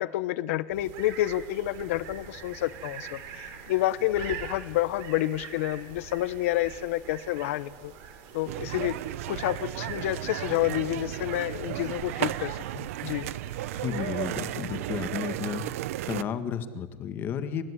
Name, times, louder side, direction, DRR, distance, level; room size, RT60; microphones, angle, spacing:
voice 1, 0.0-7.9 8.3-9.0 9.3-13.3, left 14 dB, 75° left, 16 dB, 1.2 m, -29 dB
sound 1, 0.7-15.0, right 8 dB, 50° right, 6.8 m, -44 dB
sound 2, 8.5-16.2, right 14 dB, 85° right, 0.9 m, -34 dB
voice 2, 13.7-15.6 16.1-17.6, left 8 dB, 25° left, 10 dB, 1.7 m, -32 dB
29.0 x 15.5 x 10.0 m, 1.3 s
supercardioid pair, 175°, 7 cm